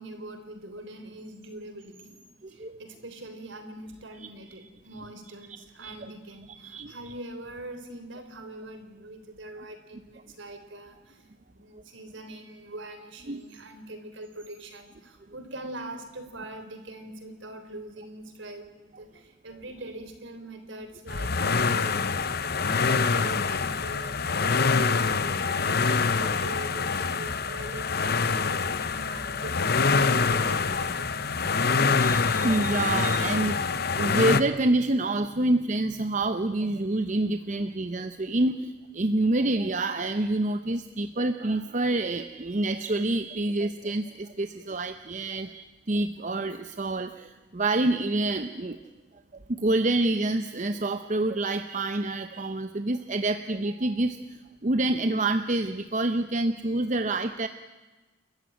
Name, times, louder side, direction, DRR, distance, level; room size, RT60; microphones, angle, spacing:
voice 1, 0.0-2.1 2.5-11.3 11.5-31.3, right 1 dB, 65° right, 7 dB, 3.4 m, -43 dB
voice 2, 2.4-2.8 4.2-4.3 5.8-6.1 6.5-6.9 11.7-11.8 13.3-13.4 23.1-23.2 32.0-48.8 49.5-57.5, right 2 dB, 35° right, 9 dB, 0.7 m, -27 dB
sound 1, 21.1-34.4, left 4 dB, 50° left, 0.9 m, -25 dB
29.0 x 14.0 x 9.2 m, 1.2 s
head